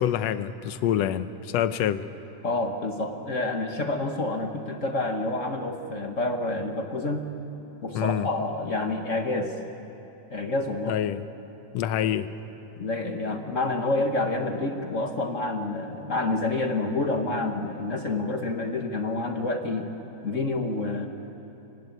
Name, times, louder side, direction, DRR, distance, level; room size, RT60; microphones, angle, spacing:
voice 1, 0.0-2.0 7.9-8.3 10.9-11.2 11.7-12.3, left 10 dB, 70° left, 12 dB, 1.8 m, -26 dB
voice 2, 2.4-7.2 7.8-9.5 10.3-11.0 12.0-12.1 12.8-19.9 20.2-21.1, left 2 dB, 40° left, 4 dB, 1.2 m, -28 dB
25.0 x 24.0 x 9.4 m, 2.9 s
omnidirectional pair, 3.4 m